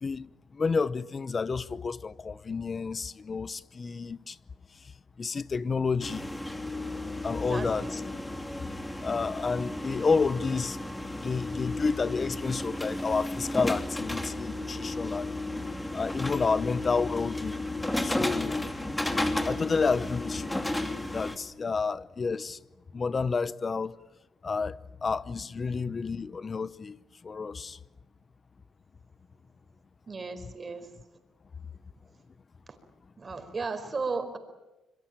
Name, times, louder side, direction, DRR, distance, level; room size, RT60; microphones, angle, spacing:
voice 1, 0.0-4.4 4.7-4.9 5.2-6.3 7.2-8.0 9.0-10.8 11.1-15.4 15.9-17.6 18.0-18.7 19.4-20.5 21.1-22.6 22.9-24.0 24.4-27.8, left 4 dB, 35° left, 0.8 m, -30 dB
sound 1, 6.0-21.4, left 2 dB, 10° left, 2.6 m, -33 dB
voice 2, 7.3-8.0 30.1-30.9 33.2-34.4, right 4 dB, 30° right, 4.8 m, -35 dB
26.0 x 22.5 x 8.9 m
cardioid pair, 90°, 0 cm